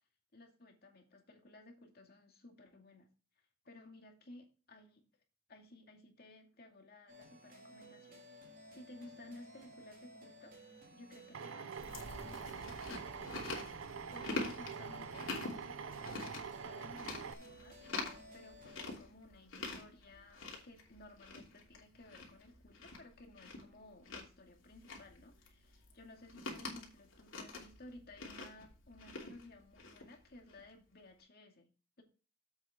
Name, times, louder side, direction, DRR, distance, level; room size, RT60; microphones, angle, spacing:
voice 1, 0.3-3.1 3.6-5.0 5.5-17.8 18.3-31.7 32.0-32.1, left 2 dB, 50° left, 2 dB, 2.3 m, -57 dB
sound 1, 7.1-19.0, equal, 45° right, 2.8 m, -57 dB
Drill, 11.3-17.3, right 6 dB, 85° right, 0.5 m, -45 dB
Chewing mastication, 11.8-30.7, left 3 dB, 80° left, 3.0 m, -47 dB
8.0 x 7.6 x 3.7 m, 0.35 s
head